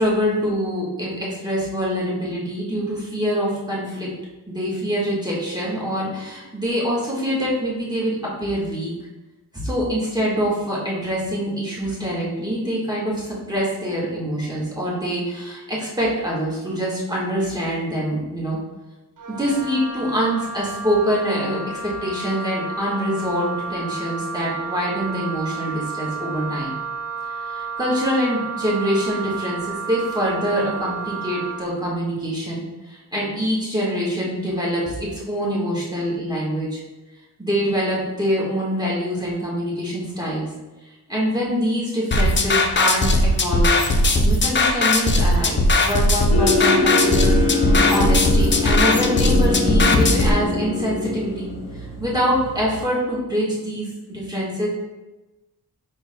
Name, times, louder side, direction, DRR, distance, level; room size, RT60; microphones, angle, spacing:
voice 1, 0.0-4.1 4.5-8.9 9.6-18.6 19.3-26.7 27.4-36.8 37.4-40.5 40.8-43.1 43.4-43.9 44.2-54.7, equal, 10° right, -6 dB, 1.4 m, -25 dB
Wind instrument woodwind instrument, 19.2-31.7, right 4 dB, 55° right, 0.7 m, -32 dB
sound 1, 42.1-50.3, left 1 dB, 30° left, 0.5 m, -18 dB
sound 2, 46.3-52.9, left 3 dB, 70° left, 1.6 m, -23 dB
5.4 x 4.5 x 2.2 m, 1.1 s
cardioid pair, 80°, 39 cm